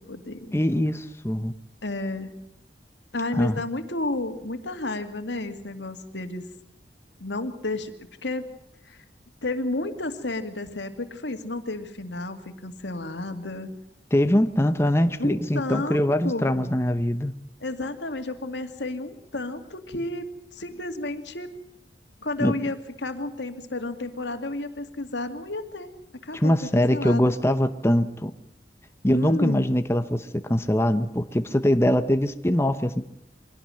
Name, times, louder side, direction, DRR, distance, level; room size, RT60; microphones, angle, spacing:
voice 1, 0.0-0.6 1.8-2.4 3.1-6.4 7.2-8.5 8.8-9.0 9.4-13.8 15.2-16.8 17.6-21.5 22.2-27.3 29.1-29.7, left 2 dB, 85° left, 7 dB, 2.4 m, -32 dB
voice 2, 0.5-1.5 3.3-3.6 14.1-17.3 22.4-22.5 26.3-28.3 29.0-33.0, left 1 dB, 15° left, 9 dB, 0.9 m, -22 dB
23.5 x 17.5 x 7.8 m, 0.76 s
head